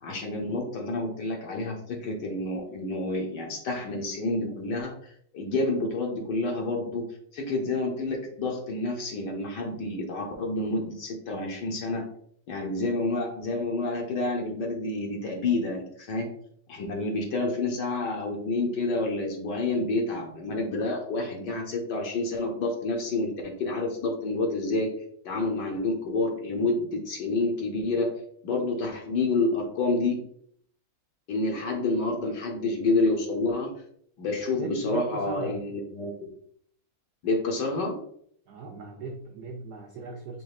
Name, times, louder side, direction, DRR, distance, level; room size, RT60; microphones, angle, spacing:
voice 1, 0.0-5.0 5.3-7.0 7.3-12.0 12.5-16.3 16.7-24.9 25.2-28.1 28.4-30.2 31.3-33.7 34.2-36.1 37.2-38.0, left 2 dB, 65° left, 1 dB, 1.3 m, -28 dB
voice 2, 34.6-35.6 38.5-40.4, right 4 dB, 80° right, 2 dB, 0.8 m, -38 dB
5.3 x 3.9 x 2.4 m, 0.64 s
omnidirectional pair, 2.3 m